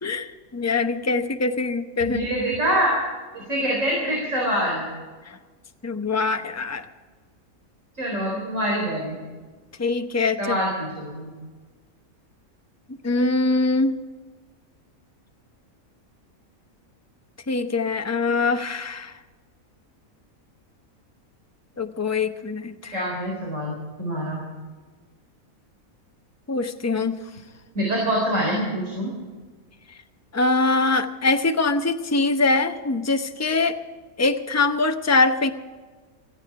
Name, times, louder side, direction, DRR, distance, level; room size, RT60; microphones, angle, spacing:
voice 1, 0.0-2.3 5.3-5.4 5.8-6.9 9.8-10.6 13.0-14.0 17.5-19.1 21.8-23.0 26.5-27.2 30.3-33.8 34.2-35.5, left 3 dB, 15° left, 7 dB, 0.6 m, -23 dB
voice 2, 2.0-3.0 3.3-4.9 8.0-9.2 10.4-11.3 22.9-24.4 27.7-29.1, equal, 60° right, -2 dB, 4.5 m, -25 dB
17.0 x 15.5 x 4.8 m, 1.4 s
omnidirectional pair, 1.5 m